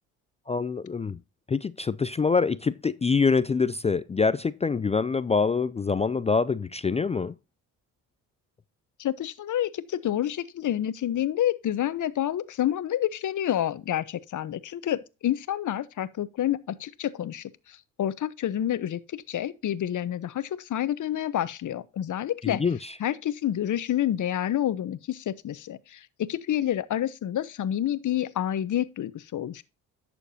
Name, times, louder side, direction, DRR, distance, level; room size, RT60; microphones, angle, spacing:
voice 1, 0.5-1.2 1.5-7.3 22.4-23.0, left 5 dB, 20° left, 0.4 m, -25 dB
voice 2, 9.0-22.6 23.0-29.6, left 11 dB, 50° left, 1.0 m, -28 dB
11.5 x 7.0 x 2.8 m
supercardioid pair, 65°, 38 cm